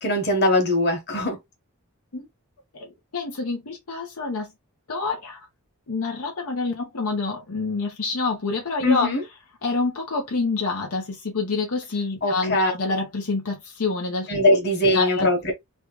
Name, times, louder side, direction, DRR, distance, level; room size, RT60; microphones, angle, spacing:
voice 1, 0.0-1.4 8.8-9.2 12.2-12.7 14.3-15.5, left 1 dB, 50° left, 1.4 m, -21 dB
voice 2, 3.1-4.5 4.9-5.4 5.9-9.1 9.6-14.3 14.9-15.3, left 3 dB, 85° left, 0.9 m, -27 dB
3.3 x 2.4 x 3.0 m
head